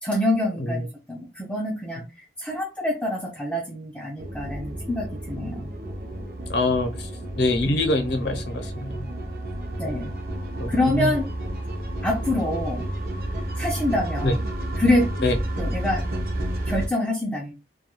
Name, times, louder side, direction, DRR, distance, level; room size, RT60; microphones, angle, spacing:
voice 1, 0.0-5.7 9.8-10.1 10.7-11.3 12.0-12.9 13.6-14.4 14.8-15.1 15.6-16.1 16.7-17.5, left 1 dB, 5° left, 0.4 m, -26 dB
sound 1, 4.2-16.9, right 1 dB, 55° right, 0.6 m, -31 dB
voice 2, 6.5-7.1 7.4-9.1 9.8-10.0 10.6-11.1 14.2-14.3 15.2-15.4, left 2 dB, 70° left, 0.6 m, -25 dB
2.2 x 2.2 x 2.9 m
head